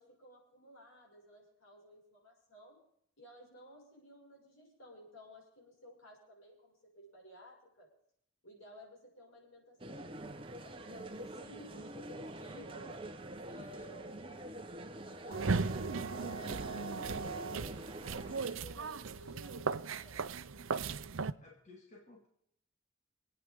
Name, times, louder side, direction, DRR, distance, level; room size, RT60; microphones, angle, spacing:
voice 1, 0.0-2.8 3.2-7.9 8.4-10.2 10.6-13.0 13.5-14.6 15.0-20.7, equal, 80° left, -1 dB, 6.1 m, -56 dB
sound 1, 9.8-18.5, right 1 dB, 25° right, 1.1 m, -46 dB
sound 2, 15.3-21.3, right 4 dB, 75° right, 0.6 m, -37 dB
voice 2, 21.4-22.3, left 3 dB, 35° left, 1 dB, 2.0 m, -56 dB
26.0 x 9.3 x 3.8 m, 0.69 s
head